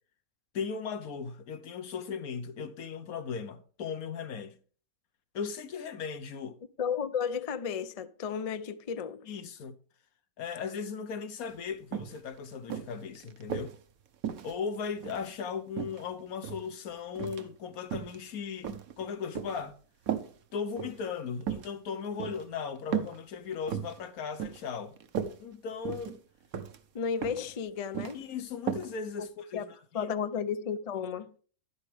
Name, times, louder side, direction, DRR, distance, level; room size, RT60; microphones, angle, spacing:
voice 1, 0.5-4.6 5.3-6.6 9.3-9.8 10.4-13.7 14.4-18.7 19.0-19.8 20.5-24.9 25.4-26.2 28.1-30.1, left 6 dB, 85° left, 1.4 m, -37 dB
voice 2, 6.8-9.3 26.9-28.2 29.2-29.3 29.5-29.7 29.9-31.3, left 7 dB, 50° left, 0.4 m, -33 dB
sound 1, 11.5-11.6 11.9-12.2 12.7-13.8 14.2-15.3 15.8-16.7 17.2-17.5 17.8-18.2 18.6-19.6 20.1-20.3 20.7-21.0 21.4-21.7 22.2-22.4 22.9-23.2 23.5-24.0 24.4-24.7 25.0-25.4 25.9-26.2 26.5-26.8 27.2-27.5 27.8-28.2 28.7-28.9 29.2-29.3, right 8 dB, 75° right, 1.4 m, -35 dB
11.0 x 9.7 x 3.3 m
omnidirectional pair, 1.5 m